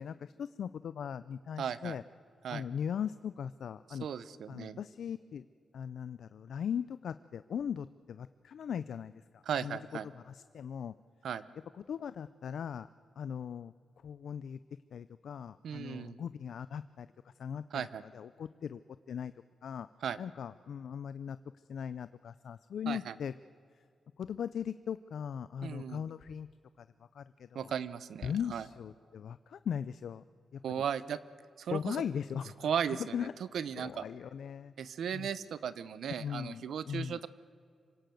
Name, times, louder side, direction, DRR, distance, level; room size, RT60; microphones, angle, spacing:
voice 1, 0.0-2.0 2.5-4.1 4.5-5.4 5.7-9.8 10.3-10.9 11.9-12.9 13.2-13.7 14.0-14.6 14.9-18.8 19.1-19.3 19.6-19.9 20.2-21.4 21.7-23.3 24.2-26.5 26.8-26.9 27.1-27.7 28.2-30.2 30.5-30.6 31.7-32.5 32.9-33.3 33.8-34.7 35.1-35.3 36.2-37.2, left 8 dB, 75° left, 14 dB, 0.5 m, -39 dB
voice 2, 1.6-2.0 2.4-2.6 3.9-4.8 9.4-10.1 11.2-11.4 15.6-16.2 17.7-18.0 20.0-20.2 22.9-23.1 25.6-26.0 27.5-28.6 30.6-31.2 31.6-32.0 32.6-33.3 33.5-34.0 34.8-37.3, right 8 dB, 80° right, 16 dB, 0.8 m, -36 dB
26.0 x 17.5 x 7.8 m, 2.3 s
wide cardioid pair, 145°, 0 cm